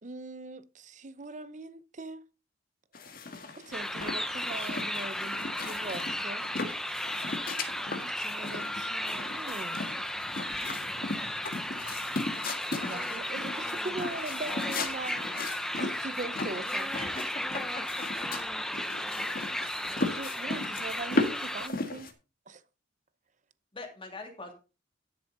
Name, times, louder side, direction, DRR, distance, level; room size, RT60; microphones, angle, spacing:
voice 1, 0.0-2.2 3.6-6.4 8.0-9.9 10.5-10.7 12.8-15.5 15.7-16.9 20.1-22.1 22.5-22.6, right 2 dB, 40° right, 0.7 m, -41 dB
sound 1, 2.9-22.1, left 2 dB, 50° left, 1.7 m, -37 dB
sound 2, 3.7-21.7, left 1 dB, ahead, 0.7 m, -35 dB
voice 2, 16.9-18.1 23.7-24.5, left 3 dB, 25° left, 2.6 m, -42 dB
13.0 x 7.1 x 4.0 m
head